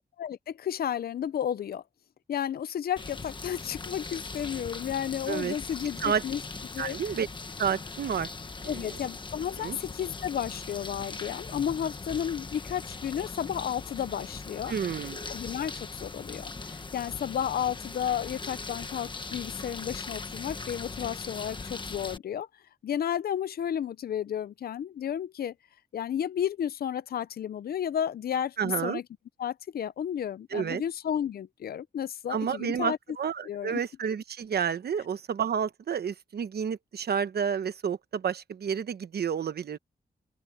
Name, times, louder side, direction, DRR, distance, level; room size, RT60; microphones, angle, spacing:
voice 1, 0.0-1.8 2.3-6.4 6.7-7.0 8.7-14.7 15.3-22.5 22.8-25.5 25.9-29.0 29.4-33.0 33.5-33.8, left 9 dB, 70° left, 0.5 m, -32 dB
sound 1, 3.0-22.2, left 3 dB, 30° left, 1.2 m, -40 dB
voice 2, 6.8-7.3 7.6-8.3 8.6-9.0 9.6-9.8 14.7-15.2 28.6-29.0 30.5-30.8 32.3-39.8, right 7 dB, 75° right, 1.0 m, -30 dB
open air
wide cardioid pair, 155°, 17 cm